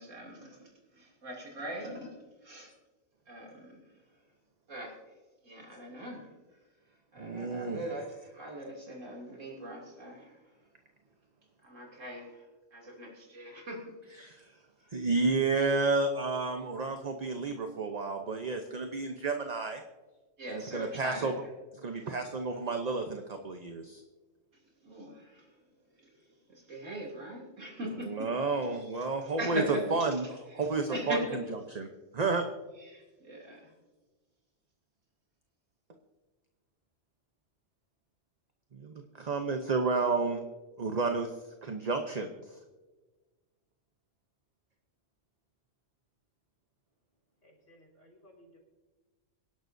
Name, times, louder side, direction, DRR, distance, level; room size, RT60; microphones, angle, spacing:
voice 1, 0.0-2.2 2.4-2.7 3.3-3.8 4.7-4.9 5.4-6.3 7.1-10.3 11.6-12.4 12.7-13.9 14.8-14.9 20.4-21.3 24.8-25.5 26.0-26.1 26.5-28.3 28.9-29.0 29.4-29.8 30.6-31.4 32.8-33.7, right 1 dB, 90° right, -2 dB, 3.2 m, -40 dB
voice 2, 7.2-7.8 14.2-14.5 14.9-19.8 20.5-21.3 21.7-24.0 28.0-29.6 29.9-32.5 38.7-40.4 40.8-41.3 41.6-42.6, right 3 dB, 35° right, 4 dB, 0.9 m, -31 dB
voice 3, 47.4-48.6, equal, 75° left, -2 dB, 5.7 m, -59 dB
26.0 x 11.5 x 2.7 m, 1.3 s
omnidirectional pair, 1.3 m